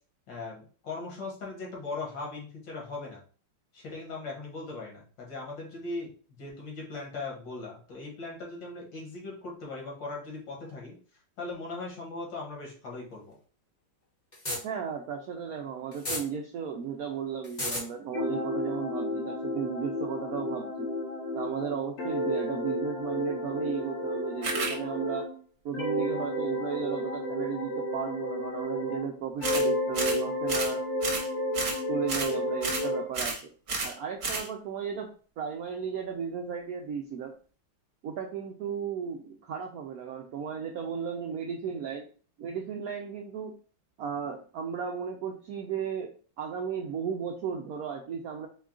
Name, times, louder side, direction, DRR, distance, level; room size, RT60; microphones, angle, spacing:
voice 1, 0.3-3.2 3.7-6.1 6.4-11.0 11.4-13.4, left 3 dB, 70° left, -2 dB, 2.1 m, -39 dB
sound 1, 14.3-14.6 15.9-16.2 17.4-17.8, left 1 dB, 30° left, 0.9 m, -31 dB
voice 2, 14.6-20.9 21.3-25.3 25.6-30.8 31.9-33.4 33.8-35.1 35.4-37.3 38.0-42.1 42.4-43.5 44.0-46.1 46.4-48.5, right 7 dB, 80° right, 2 dB, 0.8 m, -35 dB
sound 2, 18.1-25.3 25.7-29.1 29.4-33.1, left 1 dB, 85° left, 2.3 m, -31 dB
sound 3, 24.4-24.7 29.4-29.7 29.9-30.2 30.5-30.7 31.0-31.3 31.5-31.8 32.1-32.3 32.6-32.9 33.1-33.4 33.7-33.9 34.2-34.5, right 3 dB, 50° right, 1.2 m, -31 dB
4.5 x 2.3 x 3.7 m, 0.40 s
omnidirectional pair, 2.1 m